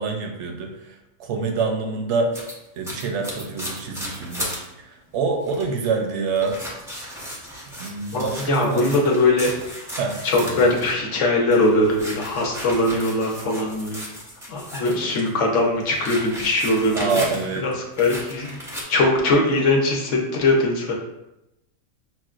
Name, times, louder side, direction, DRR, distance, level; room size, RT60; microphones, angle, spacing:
voice 1, 0.0-2.4 2.8-4.5 4.8-6.6 7.8-9.1 10.0-10.7 16.9-17.7, right 4 dB, 65° right, 4 dB, 0.8 m, -26 dB
sound 1, 2.3-4.7 5.1-5.2 5.4-5.8 6.3-11.0 11.4-15.3 15.6-17.6 18.0-18.8, equal, 5° right, 0.4 m, -35 dB
voice 2, 8.1-9.5 10.2-14.0 14.5-17.2 17.6-18.6 18.9-20.9, left 2 dB, 65° left, 0 dB, 1.0 m, -21 dB
6.2 x 2.1 x 2.4 m, 0.91 s
omnidirectional pair, 1.5 m